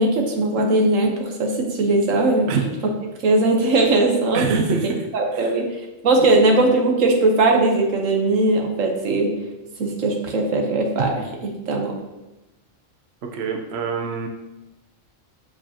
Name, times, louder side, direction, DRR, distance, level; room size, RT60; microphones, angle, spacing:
voice 1, 0.0-2.5 3.2-4.7 5.1-9.4 9.8-11.9, right 2 dB, 80° right, 2 dB, 1.3 m, -19 dB
voice 2, 4.3-5.1 5.3-5.5 6.2-6.3 13.3-14.3, right 5 dB, 60° right, 3 dB, 0.9 m, -25 dB
7.3 x 5.0 x 2.8 m, 1.0 s
omnidirectional pair, 1.3 m